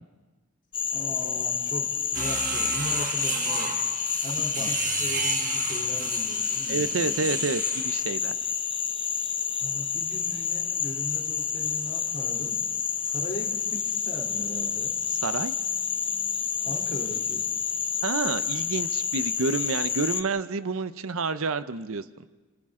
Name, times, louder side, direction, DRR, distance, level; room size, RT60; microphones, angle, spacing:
Frog, 0.7-20.2, left 7 dB, 25° left, 0.8 m, -29 dB
voice 1, 0.9-3.8 4.2-7.2 9.6-12.6 13.0-14.9 16.6-17.4, equal, 40° left, -1 dB, 3.2 m, -39 dB
sound 1, 2.1-8.0, right 6 dB, 35° right, 1.4 m, -33 dB
voice 2, 6.7-8.3 15.1-15.5 18.0-22.0, right 4 dB, 65° right, 13 dB, 0.7 m, -29 dB
29.5 x 27.0 x 3.7 m, 1.2 s
head